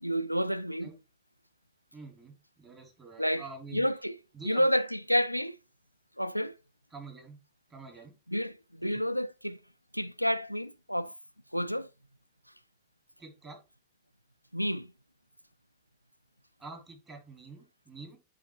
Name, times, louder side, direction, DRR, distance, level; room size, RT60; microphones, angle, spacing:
voice 1, 0.0-0.9 3.2-3.4 3.7-4.2 4.4-5.6 6.2-6.5 8.3-9.6 9.9-11.1 11.5-11.9 14.5-14.9, equal, 90° left, 0.3 m, -29 dB
voice 2, 1.9-3.9 4.3-4.7 6.9-7.4 7.7-8.2 8.8-9.0 13.2-13.6 16.6-18.2, right 3 dB, 20° right, 3.1 m, -47 dB
9.7 x 4.2 x 3.1 m
figure-of-eight pair, 90°, 0 cm